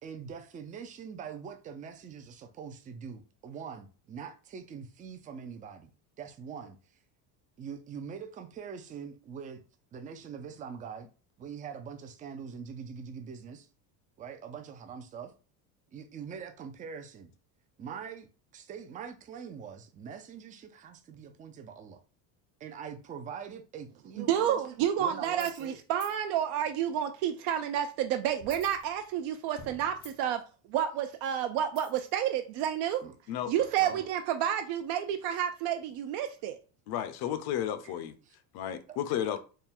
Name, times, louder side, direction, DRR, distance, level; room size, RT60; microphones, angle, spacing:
voice 1, 0.0-5.9 6.2-6.8 7.6-9.6 9.9-11.1 11.4-13.7 14.2-15.3 15.9-17.3 17.8-22.0 22.6-24.6 25.0-25.8 33.0-33.1 33.6-34.0 38.2-38.4 38.9-39.0, right 7 dB, 20° right, 0.3 m, -43 dB
voice 2, 24.2-30.4 30.7-33.0 33.5-36.6, right 10 dB, 65° right, 0.6 m, -30 dB
sound 1, 25.3-25.7 26.0-26.2 28.4-29.3 29.6-30.4 31.8-32.1, left 4 dB, 90° left, 1.5 m, -49 dB
voice 3, 36.9-38.1 38.5-39.4, left 10 dB, 55° left, 0.6 m, -32 dB
3.6 x 2.2 x 4.2 m
cardioid pair, 130°, 44 cm